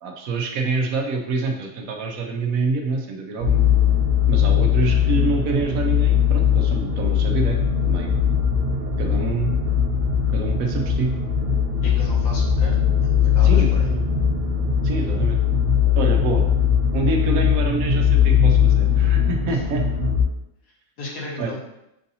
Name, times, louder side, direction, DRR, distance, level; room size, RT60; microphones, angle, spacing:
voice 1, 0.0-3.7 4.3-7.6 7.8-8.2 9.0-9.6 10.3-11.1 13.4-14.1 14.8-15.4 16.0-16.5 16.9-19.8 21.4-21.5, right 3 dB, 80° right, 3 dB, 1.1 m, -26 dB
sound 1, 3.4-20.2, left 8 dB, 55° right, 0.7 m, -19 dB
voice 2, 11.8-12.8 13.2-13.9 19.5-19.6 21.0-21.6, left 1 dB, 80° left, -3 dB, 1.6 m, -35 dB
6.2 x 2.7 x 2.7 m, 0.86 s
omnidirectional pair, 1.4 m